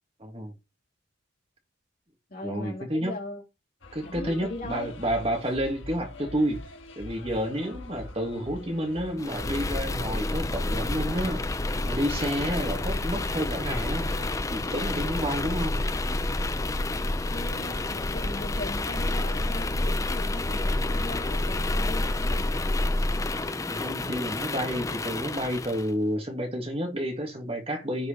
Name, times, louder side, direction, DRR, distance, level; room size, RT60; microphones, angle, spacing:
voice 1, 0.2-0.5 2.4-3.1 3.9-6.6 7.0-11.6 11.8-14.1 14.5-15.8 23.7-28.1, equal, 30° right, 1.9 m, -30 dB
voice 2, 2.3-3.4 4.0-5.0 17.3-22.5, left 2 dB, 45° left, 3.4 m, -39 dB
sound 1, 3.8-19.6, left 1 dB, 65° left, 1.7 m, -44 dB
sound 2, 9.2-25.9, left 2 dB, 15° left, 0.4 m, -29 dB
10.5 x 4.8 x 4.5 m
head